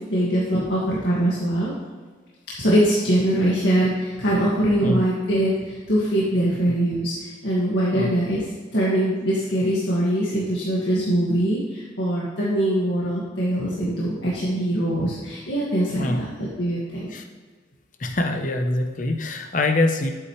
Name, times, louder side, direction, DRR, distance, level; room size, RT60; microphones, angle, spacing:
voice 1, 0.1-1.7 2.6-8.4 8.7-16.2 16.6-17.1, right 1 dB, 75° left, -7 dB, 2.0 m, -22 dB
voice 2, 18.0-20.1, left 2 dB, 40° left, 6 dB, 0.8 m, -24 dB
11.5 x 8.4 x 3.2 m, 1.4 s
head